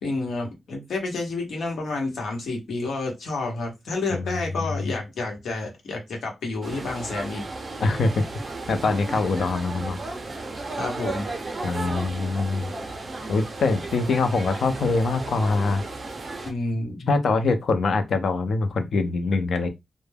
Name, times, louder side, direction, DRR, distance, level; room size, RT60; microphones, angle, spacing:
voice 1, 0.0-7.5 10.8-11.3 16.4-17.1, left 3 dB, 85° left, 0.9 m, -29 dB
voice 2, 4.1-4.4 7.8-8.2 8.7-10.0 11.6-12.7 13.3-15.8 17.1-19.7, left 3 dB, 70° left, 0.4 m, -23 dB
sound 1, 6.6-16.5, right 3 dB, 35° right, 0.5 m, -34 dB
2.2 x 2.1 x 3.2 m
wide cardioid pair, 160°, 0 cm